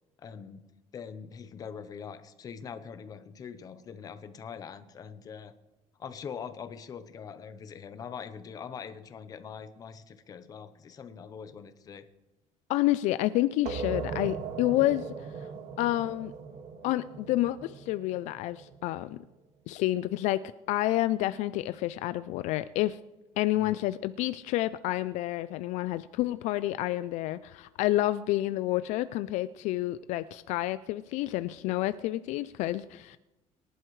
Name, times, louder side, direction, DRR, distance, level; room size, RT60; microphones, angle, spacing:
voice 1, 0.2-0.7 0.9-5.5 6.0-12.1 23.5-23.8, left 7 dB, 30° left, 11 dB, 0.8 m, -43 dB
voice 2, 12.7-15.1 15.8-16.3 16.8-19.2 19.7-20.4 20.7-23.0 23.4-33.2, left 16 dB, 65° left, 14 dB, 0.4 m, -29 dB
sound 1, 13.7-19.0, right 5 dB, 60° right, 1.8 m, -39 dB
23.5 x 11.0 x 3.2 m, 1.0 s
cardioid pair, 175°, 13 cm